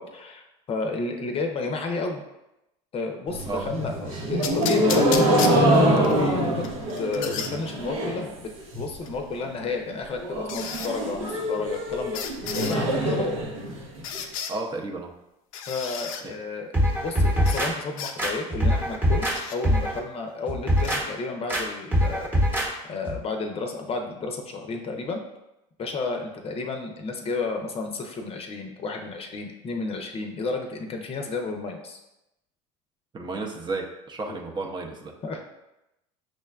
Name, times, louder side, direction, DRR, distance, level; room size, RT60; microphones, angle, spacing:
voice 1, 0.0-2.2 2.9-6.7 7.0-8.5 8.8-12.2 12.5-13.4 15.7-22.3 22.9-25.2 25.8-32.0 34.3-34.4 35.2-35.5, left 3 dB, 35° left, 3 dB, 0.6 m, -32 dB
sound 1, 3.3-8.3 8.6-9.1 9.4-9.5 9.8-9.9 10.2-14.2, right 1 dB, 85° right, 0.8 m, -24 dB
sound 2, 4.4-6.1 6.6-7.5 9.1-9.2 10.5-10.9 12.1-12.8 14.0-14.5 15.5-16.2 17.4-17.7 18.0-18.1 19.3-19.6 20.8-21.0, left 7 dB, 80° left, 0.4 m, -33 dB
voice 2, 14.5-15.1 16.2-16.4 33.1-35.1, right 3 dB, 25° right, 1 dB, 0.6 m, -32 dB
sound 3, 16.7-17.7 18.2-19.4 19.6-20.0 20.5-21.0 21.5-21.6 21.9-22.7 23.0-23.2, equal, 10° right, 0.9 m, -22 dB
6.2 x 2.2 x 2.3 m, 0.89 s
hypercardioid pair, 85°, 17 cm